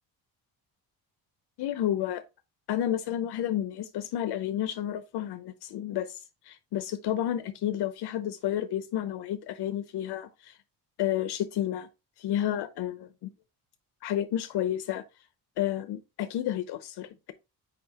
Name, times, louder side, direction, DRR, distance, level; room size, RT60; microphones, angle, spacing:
voice 1, 1.6-2.2 2.7-10.6 11.0-11.9 12.2-13.1 14.0-15.0 15.6-17.3, left 11 dB, 75° left, 0.7 m, -31 dB
6.8 x 5.0 x 2.8 m
cardioid pair, 140°, 39 cm